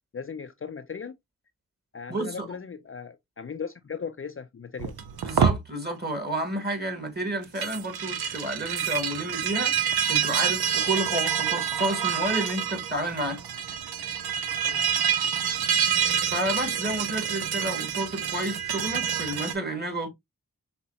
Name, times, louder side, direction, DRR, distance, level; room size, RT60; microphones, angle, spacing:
voice 1, 0.1-1.2 1.9-4.9 14.6-14.8, left 6 dB, 35° left, 0.5 m, -37 dB
voice 2, 2.1-2.5 5.2-13.4 16.3-20.1, right 1 dB, 25° right, 1.8 m, -30 dB
sound 1, 4.8-5.6 7.4-19.5, right 8 dB, 85° right, 0.6 m, -27 dB
5.5 x 2.9 x 2.7 m
cardioid pair, 45°, 37 cm